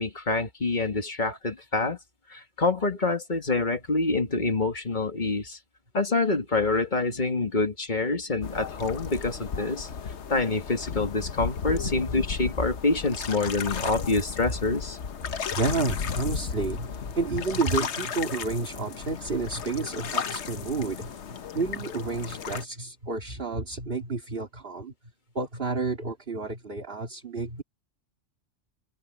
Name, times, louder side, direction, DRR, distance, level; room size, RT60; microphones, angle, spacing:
voice 1, 0.0-2.0 2.3-5.6 5.9-9.9 10.3-15.0, left 3 dB, 40° left, 2.2 m, -26 dB
sound 1, 8.4-22.6, left 6 dB, 65° left, 1.3 m, -34 dB
voice 2, 15.5-21.2 21.5-24.9 25.3-27.6, right 3 dB, 50° right, 2.6 m, -30 dB
open air
omnidirectional pair, 1.3 m